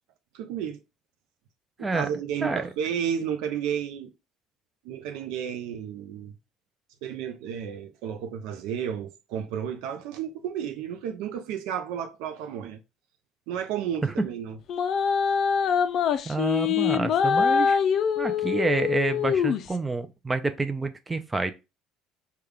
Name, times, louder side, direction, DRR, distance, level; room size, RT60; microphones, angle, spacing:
voice 1, 0.3-0.8 1.8-4.1 4.8-6.3 7.0-12.8 13.5-14.6, right 8 dB, 75° right, 0.4 m, -32 dB
sound 1, 14.7-19.7, left 7 dB, 55° left, 0.3 m, -24 dB
voice 2, 16.3-17.8 18.2-21.5, right 3 dB, 20° right, 0.4 m, -28 dB
3.4 x 2.2 x 3.3 m
hypercardioid pair, 75°, 0 cm